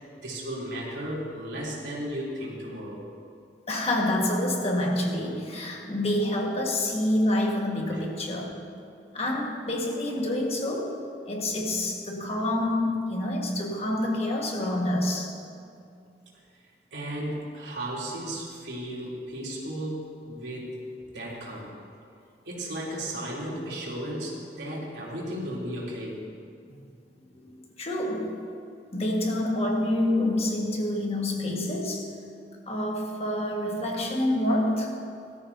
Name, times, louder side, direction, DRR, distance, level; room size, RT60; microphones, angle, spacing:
voice 1, 0.2-3.0 7.9-8.0 16.9-20.7 21.1-21.7 22.4-26.2, right 1 dB, 90° right, -5 dB, 3.2 m, -35 dB
voice 2, 3.7-8.5 9.1-15.3 26.7-26.8 27.8-28.4 28.9-32.2 32.7-34.9, left 1 dB, 35° left, 0 dB, 1.7 m, -27 dB
18.5 x 13.0 x 2.8 m, 2.5 s
head